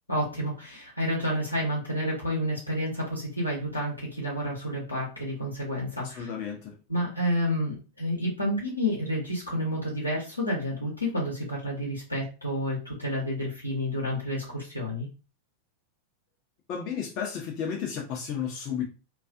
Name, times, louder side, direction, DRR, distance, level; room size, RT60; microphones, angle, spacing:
voice 1, 0.1-6.3 6.9-15.1, equal, 85° left, 0.8 m, -30 dB
voice 2, 6.0-6.8 16.7-18.8, left 7 dB, 40° left, 0.5 m, -33 dB
2.4 x 2.3 x 2.3 m
figure-of-eight pair, 90°, 0 cm